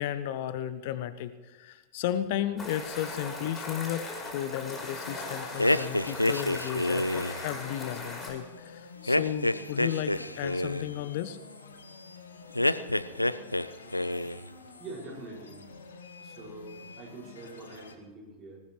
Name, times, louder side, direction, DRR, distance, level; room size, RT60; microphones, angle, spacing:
voice 1, 0.0-4.1 4.3-11.4, left 11 dB, 50° left, 13 dB, 0.8 m, -34 dB
sound 1, 2.6-8.3, left 2 dB, 20° left, 5.7 m, -39 dB
sound 2, 4.8-18.0, left 4 dB, 70° left, 1.5 m, -49 dB
sound 3, 5.6-7.4 9.1-10.9 12.5-13.7 13.9-14.4, left 1 dB, 85° left, 0.5 m, -27 dB
voice 2, 14.8-15.6 16.2-18.6, right 3 dB, 30° right, -1 dB, 5.9 m, -44 dB
20.0 x 18.5 x 3.2 m, 1.3 s
figure-of-eight pair, 90°, 0 cm